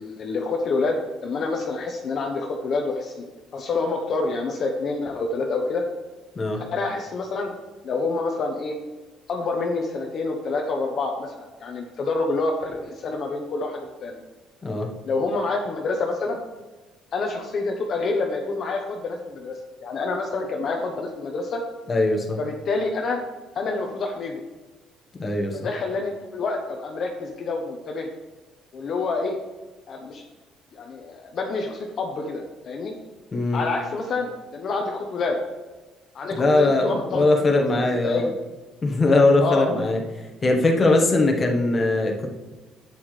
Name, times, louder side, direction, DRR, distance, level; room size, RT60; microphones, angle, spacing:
voice 1, 0.0-3.2 3.5-5.8 6.7-7.5 7.8-8.7 9.3-14.2 15.0-16.4 17.1-21.6 22.4-23.2 23.5-24.4 25.5-28.1 28.7-29.4 29.9-30.2 30.7-32.9 33.5-35.4 36.1-37.3 37.9-38.3 39.4-39.7, left 3 dB, 40° left, 2 dB, 0.9 m, -27 dB
voice 2, 21.9-22.4 25.2-25.6 33.3-33.6 36.3-38.3 38.8-40.0 40.4-42.4, left 2 dB, 20° left, 2 dB, 1.3 m, -20 dB
11.0 x 8.5 x 3.3 m, 1.2 s
cardioid pair, 160°, 0 cm